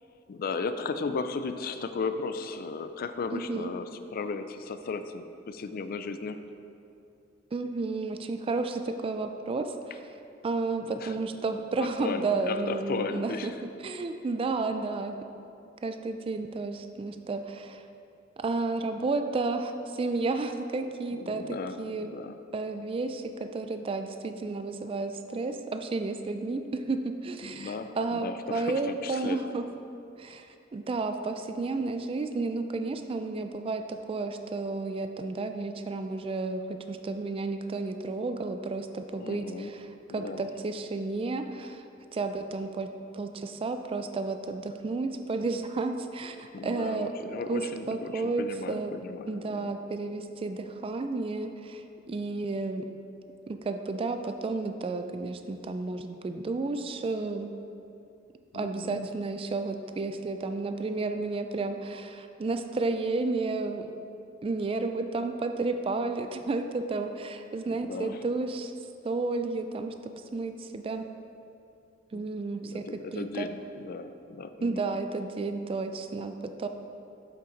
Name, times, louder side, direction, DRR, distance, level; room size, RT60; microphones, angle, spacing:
voice 1, 0.3-6.4 10.8-11.2 11.8-13.6 21.1-22.4 27.4-29.4 39.2-39.7 40.1-40.5 46.5-49.7 58.5-59.1 67.7-68.2 72.1-72.3 72.6-75.0, left 4 dB, 50° left, 10 dB, 0.4 m, -36 dB
voice 2, 3.3-3.7 7.5-9.7 10.4-13.5 13.8-15.2 15.8-17.8 18.4-22.2 22.5-29.6 30.2-30.5 30.7-41.8 42.1-47.1 47.5-47.6 47.9-48.9 49.3-52.9 53.5-57.5 58.5-63.9 64.4-68.7 69.0-69.9 70.3-71.0 72.1-72.8 73.1-73.5 74.6-76.7, right 3 dB, 30° right, 7 dB, 0.3 m, -32 dB
7.7 x 5.8 x 3.9 m, 2.7 s
head